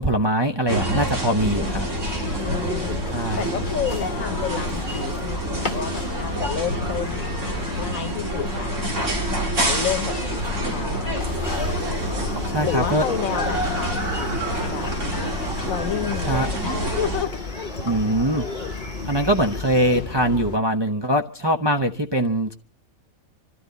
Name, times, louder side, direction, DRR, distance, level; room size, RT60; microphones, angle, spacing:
voice 1, 0.0-1.9 3.1-3.5 12.5-13.0 16.3-16.5 17.8-18.5 19.0-22.5, right 1 dB, 25° right, 0.7 m, -22 dB
sound 1, 0.7-17.3, right 1 dB, 60° right, 3.0 m, -28 dB
sound 2, 1.4-20.6, left 3 dB, 40° left, 1.0 m, -32 dB
voice 2, 2.4-3.0 3.4-7.3 7.8-9.1 9.6-10.4 10.7-11.2 12.6-14.3 14.7-14.9 15.7-17.4, left 9 dB, 75° left, 1.4 m, -30 dB
sound 3, 11.4-20.0, equal, 40° right, 5.0 m, -36 dB
27.0 x 13.0 x 4.0 m
omnidirectional pair, 1.5 m